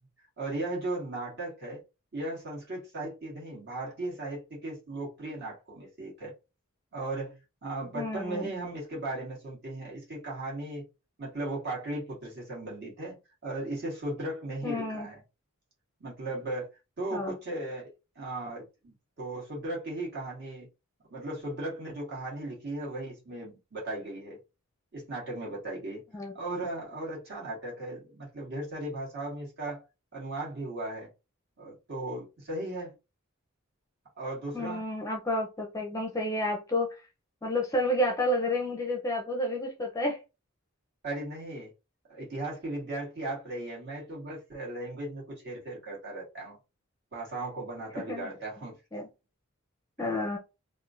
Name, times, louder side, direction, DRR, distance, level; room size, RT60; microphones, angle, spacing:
voice 1, 0.4-1.8 2.1-6.3 6.9-10.9 11.2-13.2 13.4-15.2 16.0-16.7 17.0-20.7 21.1-24.4 24.9-26.0 26.3-29.8 30.1-31.1 31.6-32.9 34.2-34.8 41.0-41.7 42.1-46.6 47.1-48.8, right 2 dB, 50° right, 1.9 m, -37 dB
voice 2, 7.9-8.5 14.6-15.1 17.1-17.3 26.1-26.3 34.5-36.9 37.4-40.2 48.1-48.3 48.9-49.1 50.0-50.4, left 1 dB, 15° left, 0.5 m, -30 dB
3.5 x 2.5 x 2.5 m
head